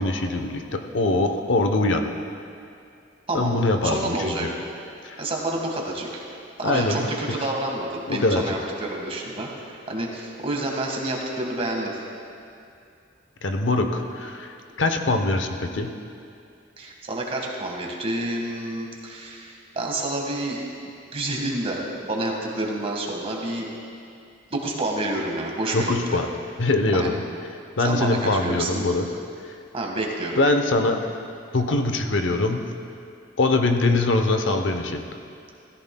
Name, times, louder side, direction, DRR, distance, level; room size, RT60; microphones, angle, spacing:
voice 1, 0.0-2.0 3.3-4.5 5.0-5.2 6.6-7.0 8.1-8.4 13.4-15.9 25.7-26.3 26.6-27.2 27.8-29.1 30.4-31.0 31.5-32.6 33.4-35.0, left 2 dB, 85° left, 5 dB, 0.8 m, -23 dB
voice 2, 3.8-4.5 5.2-6.2 6.6-12.0 16.8-20.6 21.1-23.7 24.5-26.2 26.9-27.2 27.8-28.8 29.7-30.4, right 1 dB, 30° right, -1 dB, 1.6 m, -29 dB
16.5 x 14.5 x 2.3 m, 2.5 s
head